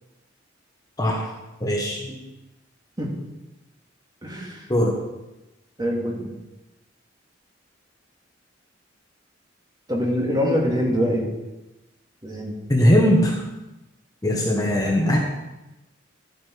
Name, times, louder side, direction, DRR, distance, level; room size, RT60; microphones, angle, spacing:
voice 1, 1.0-1.3 1.6-2.1 4.7-5.0 12.7-13.4 14.2-15.2, equal, 20° left, -1 dB, 1.5 m, -20 dB
voice 2, 4.2-4.7 5.8-6.3 9.9-11.3 12.2-12.6, equal, 20° right, -2 dB, 2.5 m, -24 dB
13.0 x 8.6 x 4.8 m, 1.0 s
head